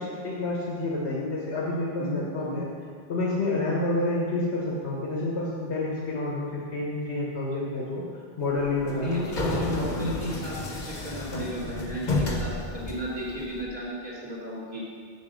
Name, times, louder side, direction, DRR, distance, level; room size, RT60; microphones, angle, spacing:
voice 1, 0.0-2.7 3.1-8.0 8.4-9.3, left 2 dB, 90° left, -4 dB, 1.5 m, -29 dB
voice 2, 2.0-2.6 8.9-14.8, equal, 45° right, -7 dB, 2.9 m, -34 dB
sound 1, 8.6-13.6, left 2 dB, 50° left, 1.1 m, -31 dB
7.3 x 7.3 x 6.3 m, 2.1 s
omnidirectional pair, 1.1 m